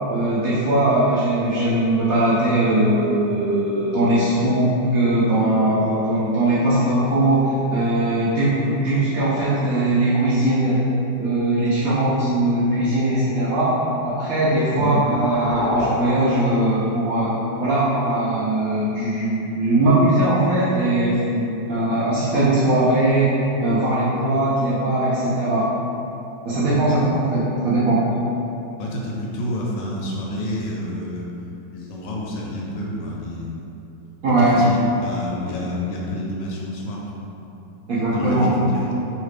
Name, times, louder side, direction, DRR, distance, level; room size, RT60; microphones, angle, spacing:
voice 1, 0.1-10.8 11.2-13.7 14.0-17.3 17.6-25.7 26.4-28.1 34.2-34.6 37.9-38.5, right 1 dB, 70° right, -9 dB, 0.8 m, -20 dB
sound 1, 14.0-17.9, left 1 dB, 55° left, 0.9 m, -30 dB
voice 2, 28.8-31.3 31.7-33.6 34.4-37.3 38.1-39.0, left 1 dB, 80° left, -3 dB, 1.3 m, -29 dB
3.2 x 2.5 x 3.2 m, 2.9 s
omnidirectional pair, 2.0 m